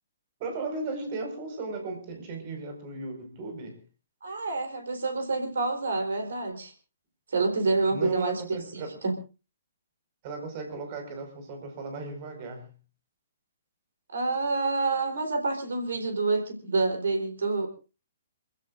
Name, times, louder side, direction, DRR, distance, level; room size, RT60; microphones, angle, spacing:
voice 1, 0.4-3.8 7.9-9.0 10.2-12.7, right 3 dB, 35° right, 5 dB, 5.3 m, -36 dB
voice 2, 4.2-6.7 7.3-8.6 9.0-9.1 14.1-17.7, right 3 dB, 60° right, 5 dB, 3.8 m, -27 dB
27.5 x 15.5 x 2.6 m, 0.32 s
figure-of-eight pair, 120°, 0 cm